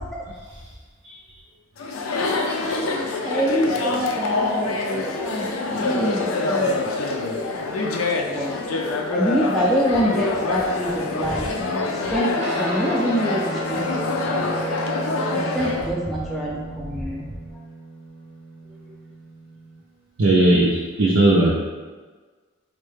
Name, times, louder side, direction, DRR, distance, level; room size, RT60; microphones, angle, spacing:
Chatter, 1.8-15.9, left 3 dB, 85° left, 0.4 m, -25 dB
voice 1, 2.6-7.1 8.3-8.5 9.1-11.8 12.1-12.3 12.5-14.7 15.3-17.2, equal, ahead, -5 dB, 0.3 m, -26 dB
Guitar, 12.4-20.0, right 2 dB, 50° right, 0.6 m, -34 dB
voice 2, 20.2-21.5, right 2 dB, 90° right, -5 dB, 0.5 m, -17 dB
4.4 x 2.1 x 3.2 m, 1.4 s
head